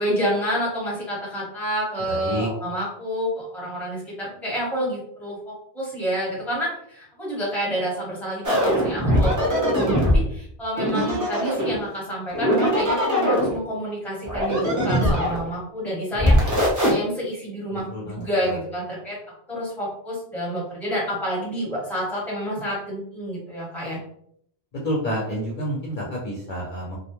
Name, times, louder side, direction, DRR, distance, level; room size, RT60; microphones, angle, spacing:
voice 1, 0.0-19.2 19.5-24.0, equal, ahead, -6 dB, 1.0 m, -29 dB
voice 2, 2.0-2.5 17.7-18.6 24.7-27.0, equal, 55° left, -4 dB, 0.7 m, -29 dB
sound 1, 8.4-10.2 10.8-11.8 12.3-13.6 14.2-15.5 16.1-16.9, equal, 20° right, 0.6 m, -21 dB
2.3 x 2.1 x 2.9 m, 0.68 s
omnidirectional pair, 1.1 m